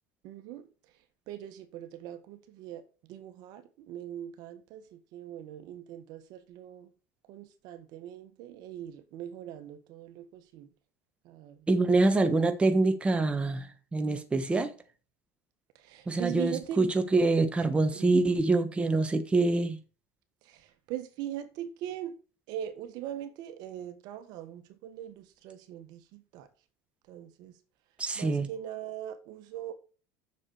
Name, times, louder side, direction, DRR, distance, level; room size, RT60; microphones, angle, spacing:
voice 1, 0.2-0.7 1.3-2.8 3.1-6.9 7.3-10.7 11.2-11.7 15.8-16.8 17.9-18.2 20.4-22.1 22.5-26.5 27.1-27.5 28.2-29.7, right 11 dB, 60° right, 1.6 m, -41 dB
voice 2, 11.7-14.7 16.1-19.8 28.0-28.5, right 3 dB, 15° right, 1.2 m, -25 dB
7.3 x 6.9 x 6.6 m
supercardioid pair, 115°, 8 cm